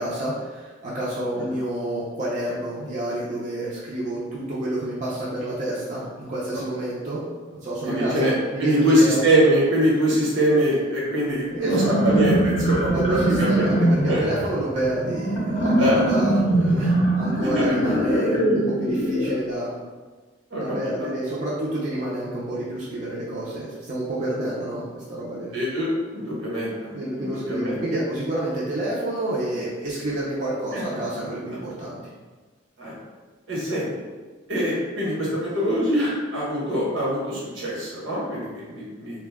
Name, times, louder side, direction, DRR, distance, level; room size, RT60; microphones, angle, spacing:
voice 1, 0.0-7.2 7.5-9.2 11.6-12.2 12.9-19.7 20.6-25.6 26.9-32.0, right 1 dB, 40° right, -8 dB, 0.5 m, -29 dB
voice 2, 7.8-8.3 8.6-13.8 14.1-14.2 15.8-16.0 17.6-17.7 20.5-21.1 25.5-27.8 30.7-30.8 32.8-33.0 33.5-34.0 34.5-39.3, equal, 80° right, -6 dB, 1.1 m, -23 dB
sound 1, 11.5-19.4, right 1 dB, 30° left, 0.6 m, -22 dB
2.6 x 2.2 x 3.5 m, 1.3 s
head